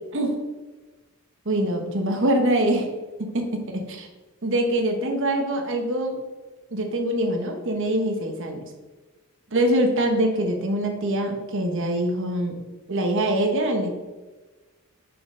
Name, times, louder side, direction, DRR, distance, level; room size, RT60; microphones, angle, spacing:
voice 1, 1.4-2.9 3.2-4.1 4.4-6.2 6.7-8.6 9.5-12.6 12.9-13.9, right 1 dB, 60° right, 4 dB, 1.2 m, -24 dB
6.1 x 5.8 x 3.8 m, 1.2 s
head